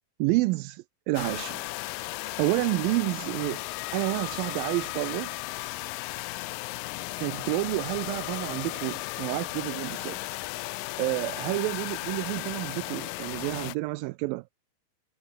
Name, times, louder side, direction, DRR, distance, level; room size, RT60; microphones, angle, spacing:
voice 1, 0.2-1.6 2.4-3.6 3.9-5.3 7.2-10.2 11.0-14.4, right 22 dB, 80° right, 2.2 m, -29 dB
sound 1, 1.2-13.8, left 20 dB, 80° left, 2.1 m, -35 dB
omnidirectional pair, 4.3 m